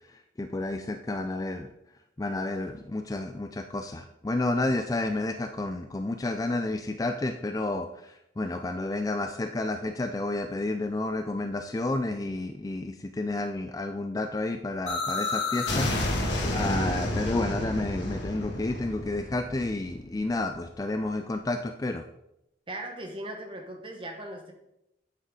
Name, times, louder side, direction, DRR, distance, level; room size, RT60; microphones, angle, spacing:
voice 1, 0.4-1.7 2.2-7.9 8.4-15.9 16.5-22.0, left 2 dB, 20° left, 6 dB, 0.3 m, -30 dB
sound 1, 14.9-20.6, left 2 dB, 75° left, 1.8 m, -30 dB
voice 2, 22.7-24.5, right 1 dB, 25° right, 3 dB, 1.2 m, -38 dB
8.1 x 7.9 x 3.8 m, 0.84 s
head